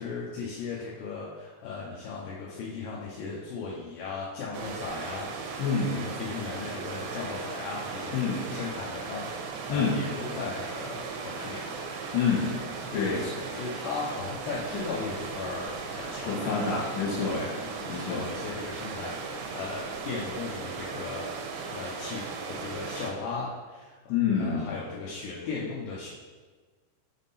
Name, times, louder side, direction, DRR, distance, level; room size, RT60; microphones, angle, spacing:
voice 1, 0.0-5.3 6.0-11.7 12.9-16.9 17.3-21.3 21.7-24.0 24.3-26.1, left 4 dB, 85° left, -5 dB, 2.4 m, -37 dB
sound 1, 4.5-23.1, right 4 dB, 85° right, 2.4 m, -37 dB
voice 2, 5.6-6.0 8.1-8.5 9.7-10.0 12.1-12.5 12.9-13.3 16.2-17.4 17.9-18.2 24.1-24.7, left 5 dB, 70° left, -5 dB, 3.1 m, -27 dB
7.3 x 3.7 x 4.1 m, 1.4 s
omnidirectional pair, 5.9 m